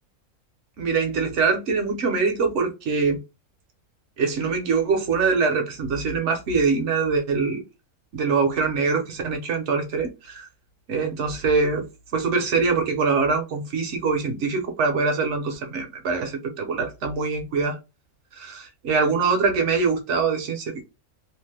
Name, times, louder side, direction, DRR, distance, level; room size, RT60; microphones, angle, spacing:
voice 1, 0.8-3.2 4.2-7.6 8.1-10.5 10.9-17.8 18.4-20.8, right 4 dB, 60° right, 0.9 m, -23 dB
2.9 x 2.0 x 3.3 m
omnidirectional pair, 1.6 m